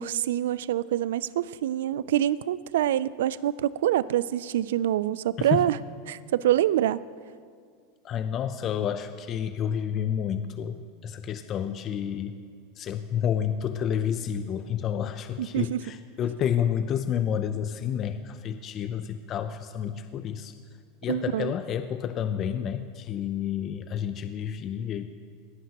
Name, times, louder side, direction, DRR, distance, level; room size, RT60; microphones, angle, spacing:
voice 1, 0.0-5.8 6.1-7.0 15.4-15.8 21.1-21.5, right 12 dB, 85° right, 19 dB, 0.3 m, -26 dB
voice 2, 8.0-12.3 12.8-20.5 21.0-25.2, left 9 dB, 40° left, 9 dB, 0.6 m, -30 dB
19.5 x 14.0 x 3.0 m, 2.1 s
supercardioid pair, 115°, 0 cm